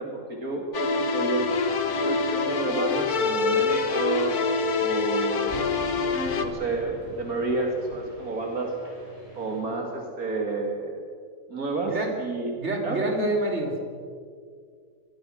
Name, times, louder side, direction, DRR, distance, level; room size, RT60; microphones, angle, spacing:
voice 1, 0.0-1.5 2.0-5.7 6.4-8.7 9.4-11.0 11.5-12.5 12.8-13.0, right 3 dB, 70° right, 1 dB, 2.8 m, -30 dB
sound 1, 0.7-6.5, left 4 dB, 75° left, 2.1 m, -25 dB
sound 2, 1.4-9.6, right 2 dB, 25° left, 7.2 m, -48 dB
Thunder, 5.3-8.7, left 1 dB, 40° left, 3.3 m, -42 dB
voice 2, 12.6-13.8, right 2 dB, 45° right, 1 dB, 3.8 m, -27 dB
25.5 x 20.5 x 6.4 m, 2.1 s
omnidirectional pair, 1.6 m